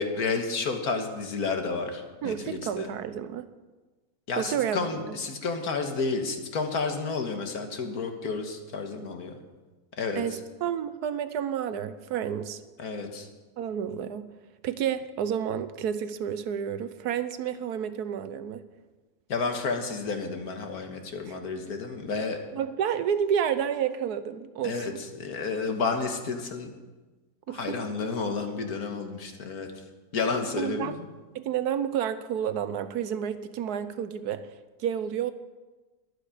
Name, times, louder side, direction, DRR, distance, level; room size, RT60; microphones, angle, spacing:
voice 1, 0.0-2.9 4.3-9.4 10.0-10.4 12.8-13.3 19.3-22.4 24.6-26.7 27.5-29.7 30.1-31.1, left 4 dB, 75° left, 5 dB, 2.0 m, -31 dB
voice 2, 2.2-3.5 4.4-4.8 10.2-12.6 13.6-14.3 14.6-18.6 22.5-25.0 27.5-27.8 30.6-31.0 31.3-34.5 34.8-35.3, right 8 dB, 85° right, 13 dB, 1.4 m, -30 dB
22.0 x 8.3 x 5.0 m, 1.2 s
omnidirectional pair, 1.6 m